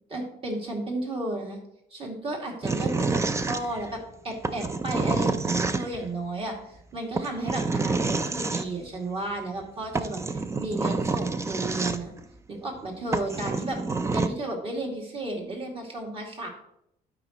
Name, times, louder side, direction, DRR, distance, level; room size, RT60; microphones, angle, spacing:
voice 1, 0.1-1.6 1.9-4.0 4.2-12.1 12.5-16.5, right 2 dB, 35° right, 0 dB, 2.3 m, -33 dB
Dragging block on concrete, 2.6-4.0 4.4-6.1 7.1-8.6 9.6-9.7 9.9-12.2 12.8-12.9 13.1-14.3, right 3 dB, 15° right, 0.5 m, -28 dB
12.0 x 5.0 x 3.0 m, 0.77 s
cardioid pair, 110°, 17 cm